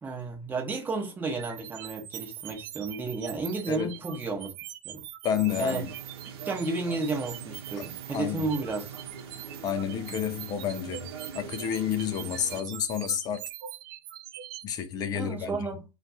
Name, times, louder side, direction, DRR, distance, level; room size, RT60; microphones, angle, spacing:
voice 1, 0.0-4.5 4.8-5.0 5.6-5.8 6.4-8.9 15.1-15.8, right 3 dB, 15° right, 0.9 m, -32 dB
sound 1, 1.4-14.7, right 13 dB, 45° right, 0.4 m, -43 dB
voice 2, 5.2-5.9 8.1-8.5 9.6-11.1 11.3-13.4 14.6-15.6, left 8 dB, 25° left, 0.5 m, -30 dB
sound 2, 5.5-12.6, right 6 dB, 65° right, 0.8 m, -43 dB
2.5 x 2.4 x 4.0 m
hypercardioid pair, 105°, 14 cm